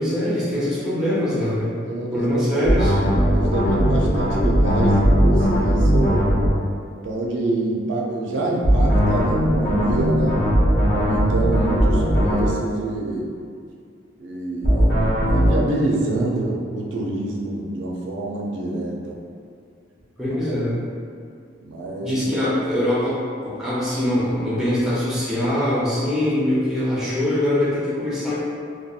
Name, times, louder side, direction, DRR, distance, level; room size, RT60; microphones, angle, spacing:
voice 1, 0.0-1.8 2.1-2.9 20.2-20.8 22.0-28.4, left 1 dB, 5° right, -9 dB, 0.5 m, -23 dB
voice 2, 1.7-2.7 3.3-6.3 7.0-10.5 10.9-13.3 14.2-19.2 20.3-20.4 20.6-20.7 21.6-22.2, right 2 dB, 70° right, -2 dB, 0.4 m, -26 dB
sound 1, 2.6-6.5 8.6-12.5 14.6-15.5, equal, 60° left, 0.8 m, -18 dB
2.7 x 2.2 x 2.3 m, 2.2 s
head